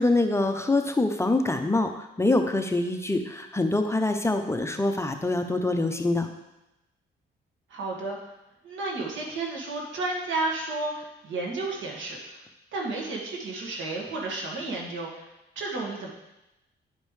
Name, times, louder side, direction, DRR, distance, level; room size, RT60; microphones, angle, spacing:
voice 1, 0.0-6.3, left 2 dB, 15° left, 5 dB, 0.6 m, -25 dB
voice 2, 7.7-8.3 8.6-12.4 12.7-15.3 15.6-16.1, right 2 dB, 75° right, -1 dB, 1.8 m, -32 dB
10.0 x 5.2 x 3.3 m, 0.94 s
cardioid pair, 90°, 20 cm